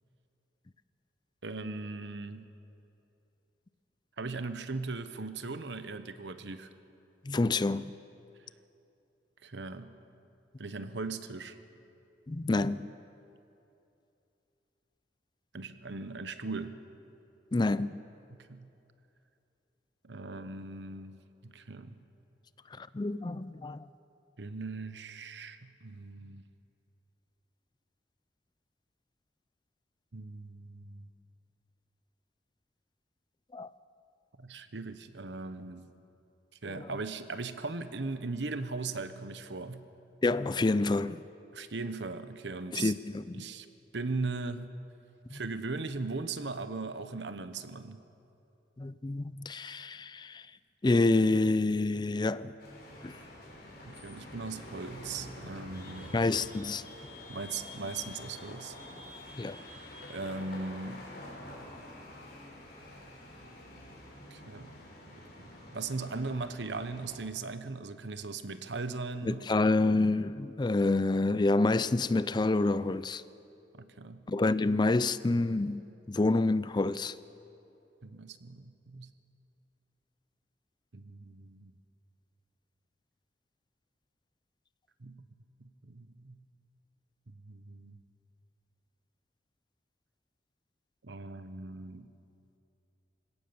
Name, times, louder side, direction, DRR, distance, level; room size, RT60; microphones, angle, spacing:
voice 1, 1.4-2.5 4.2-6.7 9.4-10.0 10.6-11.5 15.5-16.8 18.3-18.7 20.0-22.0 24.4-26.4 30.1-31.1 34.4-35.9 36.6-39.8 41.5-42.9 43.3-43.7 43.9-44.7 45.3-48.0 53.8-56.1 57.3-58.8 60.1-61.1 64.3-64.8 65.1-69.7 73.7-74.3 78.0-79.1 80.9-81.7 85.0-85.3 85.8-86.4 87.4-88.0 91.0-92.1, right 3 dB, 85° right, 1.0 m, -39 dB
voice 2, 7.2-7.9 12.3-12.9 17.5-18.0 22.7-23.9 33.5-33.7 36.8-36.9 40.2-41.2 42.7-43.4 45.3-45.4 48.8-50.5 50.8-52.5 53.0-53.2 56.1-56.8 59.4-59.6 69.2-73.2 74.3-77.1, left 2 dB, 25° left, 0.4 m, -28 dB
sound 1, 52.6-67.2, left 1 dB, 60° left, 5.3 m, -47 dB
24.0 x 17.0 x 6.9 m
head